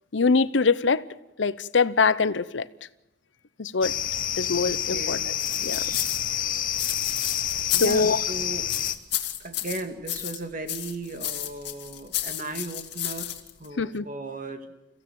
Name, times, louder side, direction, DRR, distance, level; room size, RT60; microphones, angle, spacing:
voice 1, 0.1-1.0 1.4-2.7 3.6-3.9 4.4-5.3 5.6-5.8 7.8-8.2 13.8-14.0, left 4 dB, 80° left, 16 dB, 0.8 m, -23 dB
sound 1, 3.8-8.9, left 10 dB, 50° left, 1.2 m, -28 dB
voice 2, 4.6-5.3 7.7-8.8 9.4-14.7, right 2 dB, 45° right, 6 dB, 2.1 m, -36 dB
sound 2, 5.4-8.3 8.7-10.4 10.7-13.7, left 13 dB, 65° left, 2.3 m, -32 dB
29.5 x 15.5 x 7.7 m, 0.99 s
head